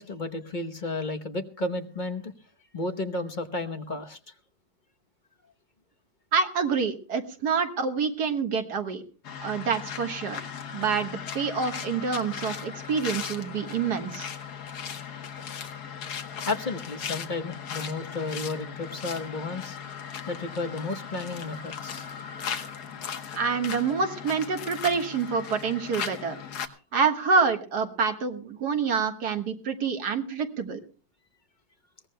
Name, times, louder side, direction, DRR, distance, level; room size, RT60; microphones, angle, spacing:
voice 1, 0.0-2.3 2.7-4.2 16.5-19.8 20.3-22.0, left 2 dB, 35° left, 6 dB, 0.9 m, -32 dB
voice 2, 6.3-9.0 9.4-14.3 23.3-26.4 26.9-30.8, right 5 dB, 80° right, 6 dB, 2.0 m, -27 dB
sound 1, 9.2-26.7, left 7 dB, 80° left, 1.7 m, -37 dB
22.0 x 17.5 x 2.2 m, 0.38 s
omnidirectional pair, 1.7 m